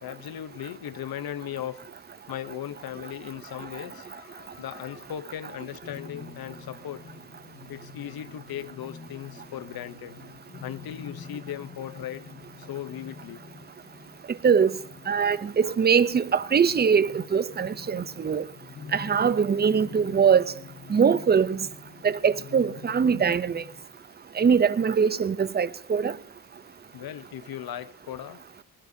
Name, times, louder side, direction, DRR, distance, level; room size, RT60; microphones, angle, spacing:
voice 1, 0.0-1.9 2.3-7.1 7.7-10.2 10.6-12.3 12.6-13.5 26.9-28.4, left 11 dB, 75° left, 0.8 m, -38 dB
sound 1, 5.8-23.8, left 6 dB, 40° left, 1.6 m, -46 dB
voice 2, 14.4-14.8 15.1-18.4 18.9-20.5 20.9-21.7 22.0-23.6 24.4-26.2, right 6 dB, 25° right, 0.5 m, -22 dB
21.0 x 19.0 x 2.7 m
cardioid pair, 110°, 37 cm